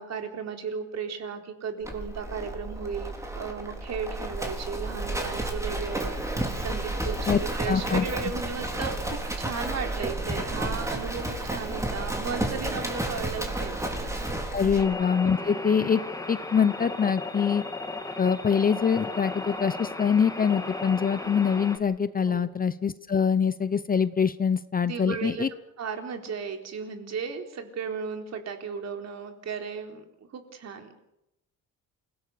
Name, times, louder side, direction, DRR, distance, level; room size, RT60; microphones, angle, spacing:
voice 1, 0.0-14.2 14.6-14.7 22.3-22.5 24.9-25.5 25.8-30.0 30.3-31.1, right 6 dB, 50° right, 4 dB, 4.1 m, -35 dB
Livestock farm animals working animals, 1.8-14.9, right 1 dB, 10° right, 4.0 m, -31 dB
voice 2, 7.7-8.0 14.5-16.0 16.3-17.6 18.2-25.5, left 7 dB, 25° left, 14 dB, 0.8 m, -24 dB
sound 1, 14.8-21.8, left 2 dB, 10° left, 2.1 m, -35 dB
28.0 x 17.5 x 6.7 m, 0.82 s
cardioid pair, 135°, 33 cm